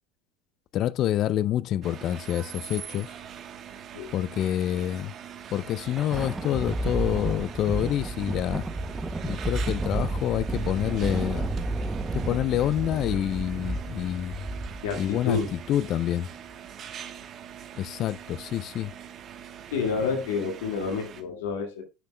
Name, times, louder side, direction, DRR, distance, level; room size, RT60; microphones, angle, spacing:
voice 1, 0.7-3.1 4.1-5.1 5.5-8.6 9.2-11.5 12.1-14.4 15.0-16.3 17.8-18.9, left 12 dB, 50° left, 0.4 m, -27 dB
sound 1, 1.8-21.2, right 9 dB, 45° right, 1.1 m, -43 dB
Thunder, 5.5-16.3, right 2 dB, 15° right, 0.7 m, -32 dB
voice 2, 14.8-15.5 19.7-21.8, left 5 dB, 85° left, 1.9 m, -29 dB
10.0 x 6.1 x 2.2 m
hypercardioid pair, 85°, 0 cm